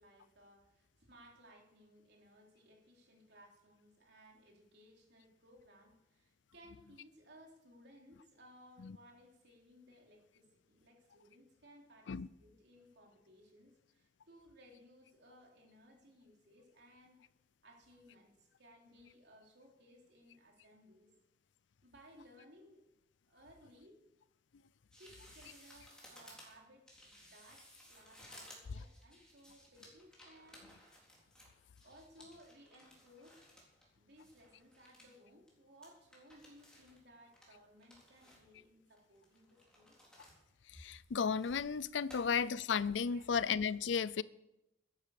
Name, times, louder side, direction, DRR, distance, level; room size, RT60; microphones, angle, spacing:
voice 1, 0.0-17.3 17.6-21.1 21.8-22.8 23.2-24.0 25.0-30.7 31.8-33.4 34.0-40.0 43.1-43.2, equal, 65° right, 3.5 m, -61 dB
sound 1, 24.9-33.9 34.2-35.2 35.5-35.6 35.8-37.0 37.3-38.6 39.0-40.4 40.7-41.7 42.1-42.2, equal, 5° left, 4.1 m, -59 dB
voice 2, 40.7-44.2, left 6 dB, 75° left, 0.5 m, -34 dB
13.5 x 10.5 x 6.6 m
head